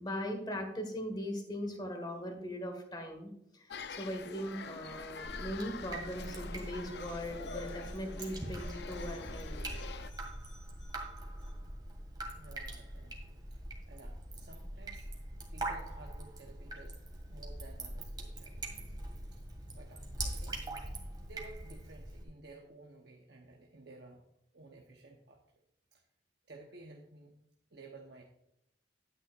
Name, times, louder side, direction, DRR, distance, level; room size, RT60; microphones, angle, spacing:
voice 1, 0.0-11.1, equal, 25° left, 5 dB, 1.7 m, -40 dB
sound 1, 3.7-10.1, left 5 dB, 60° left, 0.5 m, -46 dB
Drip, 5.2-22.2, right 1 dB, 25° right, 2.0 m, -43 dB
voice 2, 12.4-15.1 15.5-18.9 19.3-19.4 19.7-20.6 21.2-24.2 24.5-25.6 25.9-26.0 26.4-27.3 27.7-28.2, right 2 dB, 60° right, 0 dB, 1.0 m, -55 dB
11.0 x 9.8 x 2.5 m, 0.77 s
head